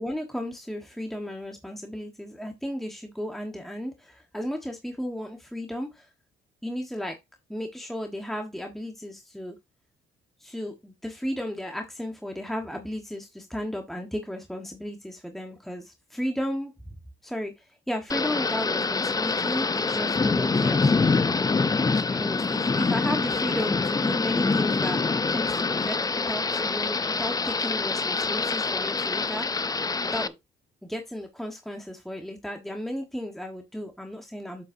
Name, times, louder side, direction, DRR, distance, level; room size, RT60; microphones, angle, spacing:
voice 1, 0.0-6.1 6.6-7.2 7.5-9.6 10.4-16.7 17.2-20.9 21.9-29.6 30.1-30.3 30.9-34.6, equal, ahead, 1.4 m, -34 dB
Thunder / Rain, 18.1-30.3, left 4 dB, 20° left, 0.5 m, -25 dB
7.8 x 7.5 x 2.7 m
cardioid pair, 90°, 20 cm